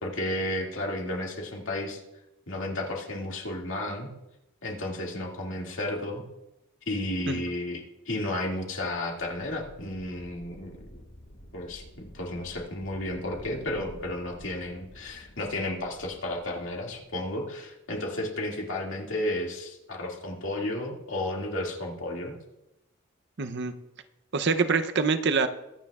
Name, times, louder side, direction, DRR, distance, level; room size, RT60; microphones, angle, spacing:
voice 1, 0.0-2.0 2.5-4.1 4.6-6.3 6.9-11.0 11.5-22.4, left 1 dB, 70° left, -1 dB, 2.3 m, -33 dB
sound 1, 9.2-17.3, equal, 90° left, 4.7 m, -49 dB
voice 2, 23.4-23.7 24.3-25.5, right 4 dB, 60° right, 9 dB, 0.7 m, -25 dB
23.0 x 9.2 x 2.4 m, 0.92 s
head